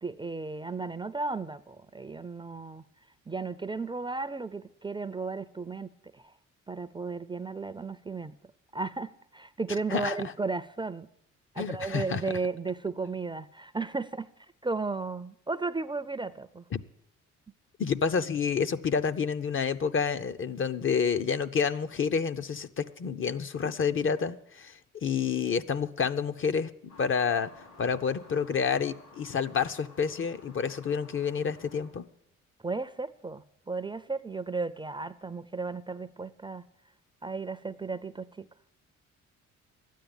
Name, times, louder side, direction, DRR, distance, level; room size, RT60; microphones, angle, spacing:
voice 1, 0.0-2.8 3.3-6.3 6.7-8.4 8.7-11.1 11.5-14.3 14.6-16.6 32.6-36.6 37.2-38.5, right 3 dB, 15° right, 0.5 m, -34 dB
voice 2, 11.6-12.2 16.7-16.8 17.8-27.5 27.8-32.1, left 6 dB, 45° left, 0.7 m, -29 dB
sound 1, 26.9-31.9, left 3 dB, 80° left, 6.4 m, -54 dB
12.5 x 9.4 x 8.8 m
cardioid pair, 90°, 30 cm